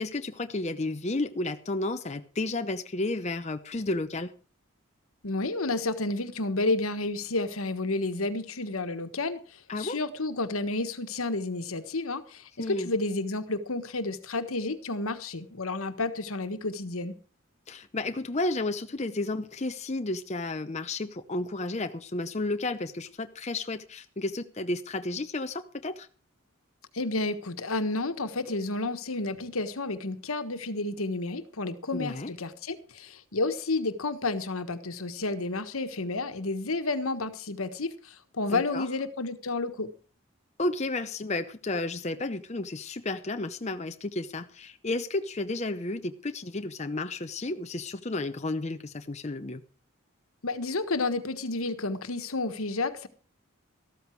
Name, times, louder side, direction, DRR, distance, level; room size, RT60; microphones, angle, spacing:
voice 1, 0.0-4.3 9.7-10.0 12.6-12.9 17.7-26.1 31.9-32.3 38.5-38.9 40.6-49.6, left 2 dB, 30° left, 0.7 m, -32 dB
voice 2, 5.2-9.4 9.8-17.2 26.9-39.9 50.4-53.1, left 2 dB, 80° left, 1.4 m, -31 dB
14.0 x 13.5 x 4.6 m
head